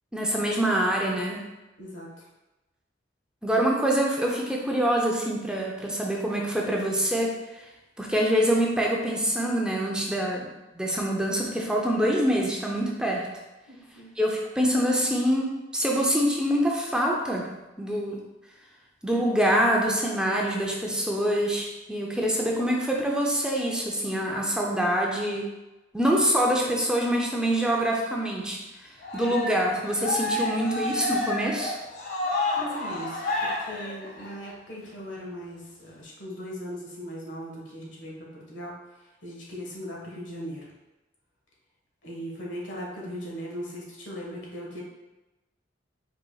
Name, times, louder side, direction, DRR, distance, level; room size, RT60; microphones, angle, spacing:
voice 1, 0.1-1.4 3.4-7.3 8.0-10.5 10.7-13.3 14.2-17.5 17.8-18.2 19.0-25.5 25.9-31.7, equal, 5° right, -2 dB, 0.5 m, -25 dB
voice 2, 1.8-2.2 13.7-14.1 32.5-38.7 39.2-40.7 42.0-44.8, equal, 75° left, -3 dB, 1.5 m, -38 dB
Cheering, 29.0-34.5, left 2 dB, 60° left, 1.3 m, -30 dB
5.2 x 4.4 x 2.3 m, 1.0 s
head